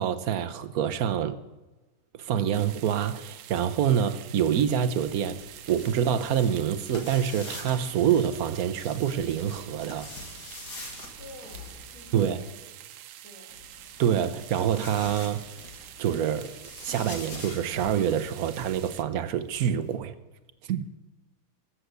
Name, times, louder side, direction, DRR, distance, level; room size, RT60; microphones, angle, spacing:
voice 1, 0.0-1.4 2.2-10.1 12.1-12.4 14.0-15.4 16.0-20.1 20.7-20.8, right 9 dB, 65° right, 0.9 m, -26 dB
sound 1, 2.5-19.0, right 12 dB, 85° right, 1.6 m, -46 dB
sound 2, 4.4-12.5 13.5-20.0, left 3 dB, 50° left, 2.8 m, -46 dB
voice 2, 11.2-12.7 13.2-13.6, left 2 dB, 70° left, 3.8 m, -49 dB
14.0 x 7.9 x 8.1 m
omnidirectional pair, 2.4 m